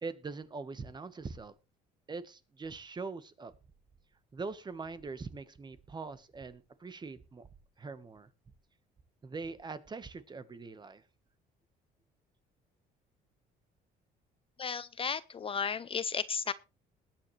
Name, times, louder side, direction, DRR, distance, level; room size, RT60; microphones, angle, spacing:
voice 1, 0.0-1.5 2.1-3.5 4.3-7.5 7.8-8.3 9.2-11.0, right 4 dB, 25° right, 1.2 m, -42 dB
voice 2, 14.6-16.5, left 6 dB, 35° left, 0.5 m, -34 dB
20.5 x 9.0 x 3.2 m
cardioid pair, 110°, 17 cm